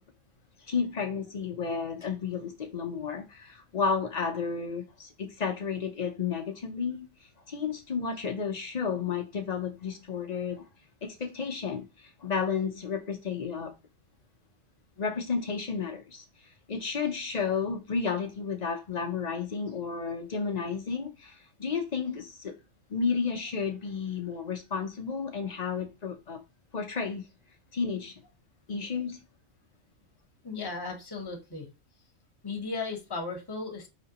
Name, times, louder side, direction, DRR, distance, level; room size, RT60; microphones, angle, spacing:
voice 1, 0.7-10.6 11.0-13.7 15.0-22.5 22.9-26.4 26.7-27.2 27.7-28.1 28.7-29.2, left 5 dB, 45° left, 0.5 m, -32 dB
voice 2, 30.4-31.7 32.4-33.9, left 3 dB, 20° left, 0.9 m, -36 dB
5.0 x 2.9 x 2.9 m
omnidirectional pair, 1.3 m